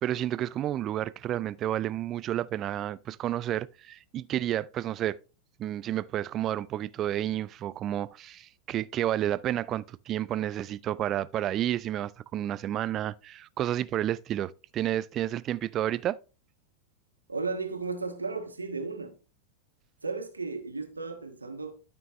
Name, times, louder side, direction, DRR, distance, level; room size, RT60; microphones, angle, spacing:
voice 1, 0.0-5.2 5.6-16.2, right 12 dB, 30° right, 0.4 m, -31 dB
voice 2, 17.3-19.2 20.0-21.7, right 4 dB, 80° right, 1.5 m, -34 dB
12.5 x 6.1 x 3.2 m
figure-of-eight pair, 90°, 0 cm